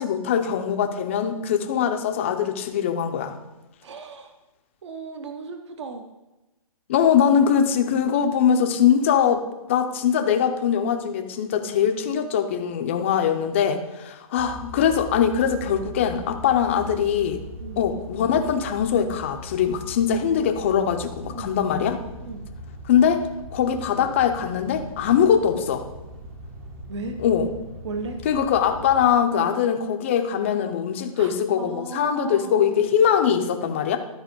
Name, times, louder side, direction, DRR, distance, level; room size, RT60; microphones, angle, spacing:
voice 1, 0.0-3.4 6.9-17.4 17.8-22.0 22.9-23.2 23.5-25.9 27.2-27.5 28.2-34.0, left 8 dB, 20° left, 6 dB, 0.5 m, -22 dB
voice 2, 3.8-4.3 4.8-6.0 17.6-17.9 21.3-21.6 22.2-22.5 26.9-27.2 27.8-28.2 31.1-32.9, right 3 dB, 50° right, 6 dB, 0.9 m, -36 dB
sound 1, 14.4-29.1, right 1 dB, 25° right, 0.8 m, -40 dB
12.5 x 4.3 x 5.2 m, 1.0 s
hypercardioid pair, 160°, 18 cm